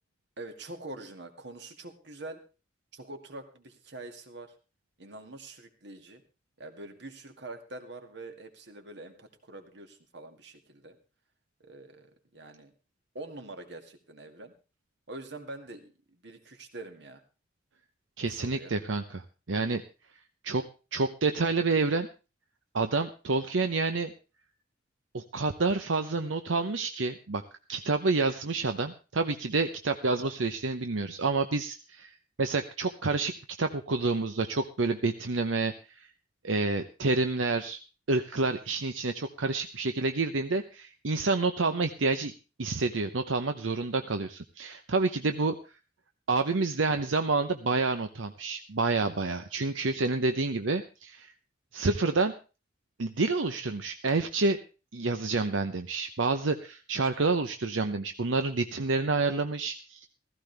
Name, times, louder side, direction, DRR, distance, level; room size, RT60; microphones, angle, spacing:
voice 1, 0.4-2.4 2.9-4.5 5.0-6.2 6.6-11.0 11.6-12.7 13.1-14.5 15.1-17.2 18.3-18.7 45.3-45.5, right 2 dB, 60° right, 6 dB, 2.2 m, -45 dB
voice 2, 18.2-19.8 20.4-20.6 20.9-22.1 22.7-24.1 25.1-27.4 27.7-36.1 36.4-37.8 38.1-42.3 42.6-45.6 46.3-51.3 51.7-52.3 53.0-54.6 54.9-60.1, right 3 dB, 85° right, 8 dB, 0.8 m, -28 dB
15.5 x 15.5 x 3.4 m, 0.32 s
head